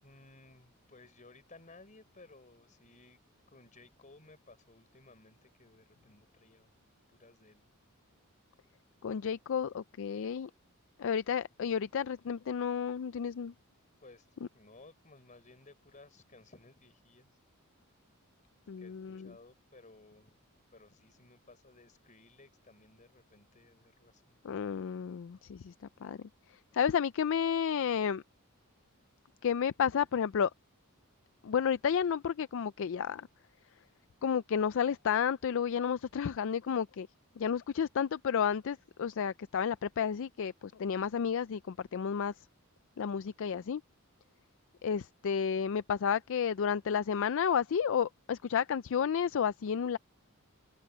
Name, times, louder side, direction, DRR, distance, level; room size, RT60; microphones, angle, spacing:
voice 1, 0.0-3.2 3.5-6.7 7.1-7.7 10.4-10.6 14.0-14.3 14.5-17.3 18.8-20.4 20.7-24.8, left 3 dB, 35° left, 4.6 m, -58 dB
voice 2, 9.0-10.5 11.0-13.5 18.7-19.3 24.4-25.7 26.0-26.2 26.7-28.2 29.4-30.5 31.4-33.3 34.2-37.1 37.4-42.3 43.0-43.8 44.8-50.0, left 7 dB, 60° left, 0.4 m, -31 dB
head